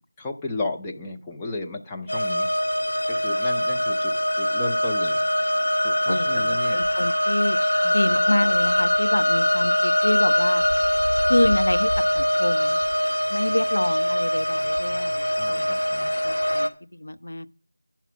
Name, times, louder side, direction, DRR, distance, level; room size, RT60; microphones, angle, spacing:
voice 1, 0.2-2.5 3.1-5.3 5.8-6.8 7.7-7.9 15.4-16.1, left 2 dB, 5° left, 0.5 m, -34 dB
sound 1, 2.1-16.7, equal, 80° left, 2.0 m, -22 dB
voice 2, 6.1-7.6 7.9-10.6 11.3-11.9 12.1-12.8 13.3-15.7 16.2-17.5, left 1 dB, 65° left, 0.8 m, -27 dB
10.5 x 5.8 x 7.1 m
figure-of-eight pair, 175°, 0 cm